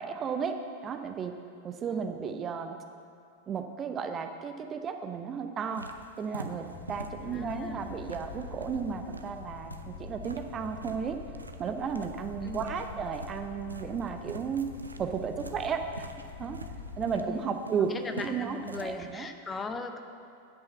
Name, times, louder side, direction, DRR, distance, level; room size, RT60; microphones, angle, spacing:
voice 1, 0.0-1.4 1.6-2.8 3.5-5.9 6.2-11.2 11.6-14.6 15.0-16.1 16.4-16.6 17.0-19.3, right 6 dB, 25° right, 7 dB, 0.5 m, -34 dB
voice 2, 1.9-2.2 7.2-7.9 12.4-12.8 17.2-20.0, left 4 dB, 15° left, 6 dB, 0.7 m, -39 dB
sound 1, 5.6-19.0, right 2 dB, 80° right, 0.5 m, -47 dB
sound 2, 6.7-17.3, left 5 dB, 50° left, 1.0 m, -45 dB
9.7 x 5.7 x 6.9 m, 2.4 s
figure-of-eight pair, 90°, 0 cm